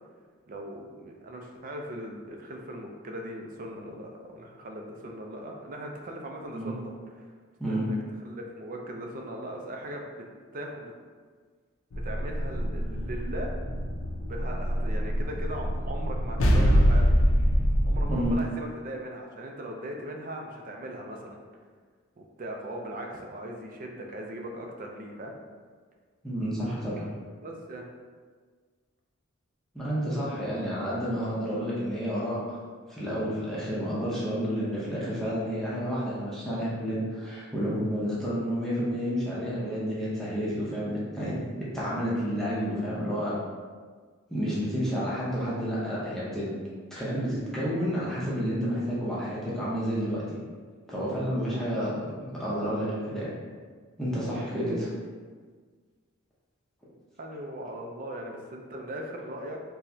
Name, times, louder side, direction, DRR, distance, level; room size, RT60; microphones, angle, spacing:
voice 1, 0.5-7.3 7.7-8.0 8.2-10.2 10.5-10.9 11.9-13.5 14.2-17.1 17.8-21.4 22.2-25.4 27.0-27.1 27.4-27.9 51.4-51.9 57.2-59.6, right 1 dB, 40° right, 1 dB, 0.4 m, -39 dB
sound 1, 11.9-18.4, equal, 75° left, 0.5 m, -25 dB
voice 2, 26.2-27.0 29.7-32.6 32.9-41.4 41.7-43.3 44.3-46.5 46.9-50.2 50.9-53.3 54.0-54.9, equal, ahead, -9 dB, 0.6 m, -30 dB
4.5 x 2.1 x 2.7 m, 1.5 s
head